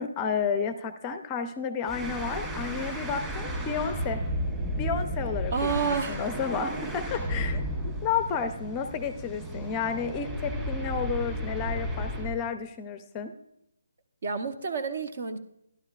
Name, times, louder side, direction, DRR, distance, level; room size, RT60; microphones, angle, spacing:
voice 1, 0.0-4.2 4.8-7.6 8.0-13.3, left 6 dB, 20° left, 9 dB, 0.5 m, -31 dB
sound 1, 1.8-12.4, equal, 10° right, 1.8 m, -33 dB
voice 2, 5.5-6.2 14.2-15.4, right 6 dB, 50° right, 8 dB, 1.0 m, -29 dB
11.5 x 11.5 x 2.4 m, 0.79 s
hypercardioid pair, 160°, 0 cm